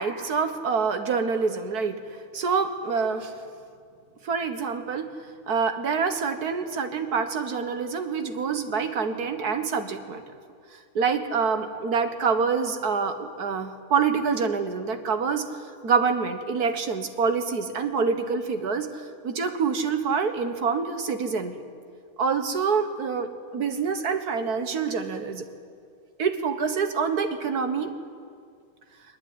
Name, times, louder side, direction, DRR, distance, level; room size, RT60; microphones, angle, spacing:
voice 1, 0.0-2.0 2.3-3.3 4.2-5.1 5.5-10.2 11.0-15.5 15.8-21.5 22.2-25.5 26.2-27.9, right 5 dB, 85° right, 8 dB, 2.0 m, -26 dB
20.5 x 20.0 x 9.7 m, 2.2 s
omnidirectional pair, 1.6 m